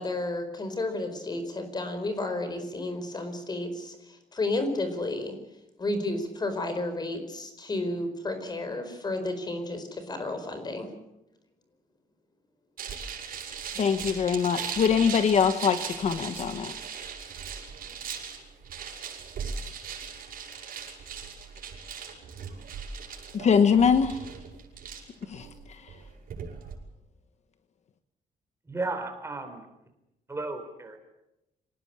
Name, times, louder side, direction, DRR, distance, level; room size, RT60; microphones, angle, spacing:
voice 1, 0.0-4.0 4.3-5.3 5.8-10.9 17.8-17.9, left 2 dB, 25° left, 8 dB, 4.6 m, -32 dB
sound 1, 12.8-26.7, right 6 dB, 70° right, 7.4 m, -39 dB
voice 2, 13.8-16.7 23.3-24.2 25.3-26.0, left 6 dB, 45° left, 9 dB, 1.3 m, -23 dB
voice 3, 28.7-29.6 30.3-31.0, right 3 dB, 15° right, 5 dB, 3.9 m, -34 dB
26.0 x 18.5 x 8.8 m, 0.90 s
wide cardioid pair, 165°, 15 cm